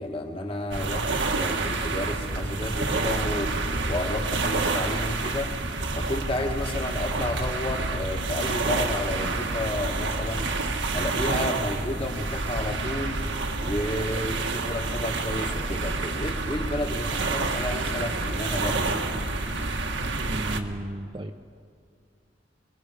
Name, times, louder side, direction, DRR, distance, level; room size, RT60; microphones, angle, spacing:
voice 1, 0.0-3.6 3.9-5.5 5.9-10.5 10.9-13.2 13.6-19.2, left 1 dB, 30° left, 3 dB, 1.7 m, -31 dB
sound 1, 0.7-20.6, right 3 dB, 85° right, 1.6 m, -28 dB
voice 2, 20.2-21.4, right 1 dB, 30° right, 3 dB, 0.6 m, -34 dB
28.5 x 21.5 x 5.1 m, 2.3 s
head